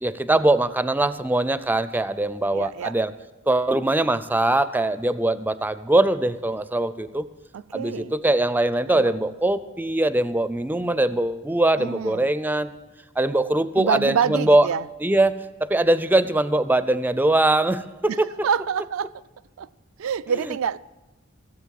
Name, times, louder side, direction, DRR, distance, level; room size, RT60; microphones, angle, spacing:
voice 1, 0.0-3.1 3.5-7.3 7.7-12.7 13.2-14.7 15.0-15.3 15.6-18.5 20.4-20.5, right 1 dB, 10° right, 0.4 m, -22 dB
voice 2, 2.5-2.9 7.5-8.2 8.9-9.1 11.8-12.3 13.8-14.8 18.1-18.2 18.4-19.2 19.6-19.7 20.0-20.8, right 7 dB, 75° right, 0.3 m, -26 dB
16.5 x 7.7 x 7.5 m
head